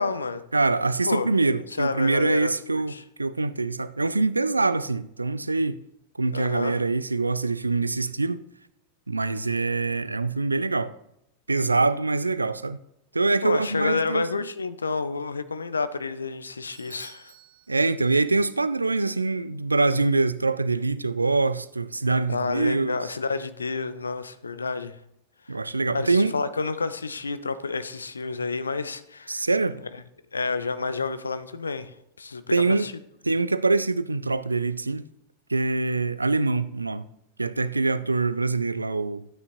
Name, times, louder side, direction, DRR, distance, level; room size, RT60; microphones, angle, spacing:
voice 1, 0.0-0.4 1.0-1.3 1.8-3.0 6.3-6.8 13.4-17.3 22.3-25.0 25.5-25.6 25.9-29.4 30.3-31.9 32.2-32.9, left 4 dB, 75° left, 0.6 m, -29 dB
voice 2, 0.5-5.8 6.2-8.4 9.1-10.9 11.5-12.8 13.1-14.3 17.7-23.1 25.5-26.3 29.3-29.8 32.5-32.9 33.2-35.0 35.5-37.1 37.4-39.2, right 3 dB, 80° right, 0.4 m, -24 dB
Bell / Doorbell, 16.7-18.6, right 10 dB, 50° right, 1.5 m, -53 dB
12.5 x 9.5 x 2.7 m
figure-of-eight pair, 90°, 0 cm